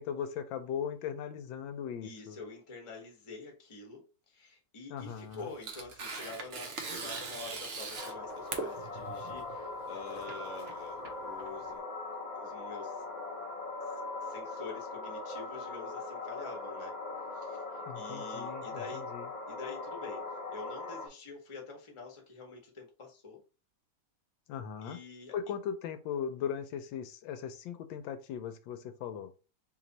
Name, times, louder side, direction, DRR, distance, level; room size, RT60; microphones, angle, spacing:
voice 1, 0.0-2.4 4.9-5.5 17.9-19.3 24.5-25.0 25.3-29.3, left 8 dB, 85° left, 1.4 m, -38 dB
voice 2, 2.0-11.8 12.3-13.0 14.2-16.9 17.3-19.1 19.5-23.4 24.8-25.4, left 4 dB, 25° left, 0.7 m, -47 dB
Tearing, 5.0-11.8, right 4 dB, 85° right, 0.5 m, -41 dB
sound 1, 8.0-21.1, left 3 dB, 55° left, 0.4 m, -40 dB
3.2 x 3.1 x 3.9 m
omnidirectional pair, 2.0 m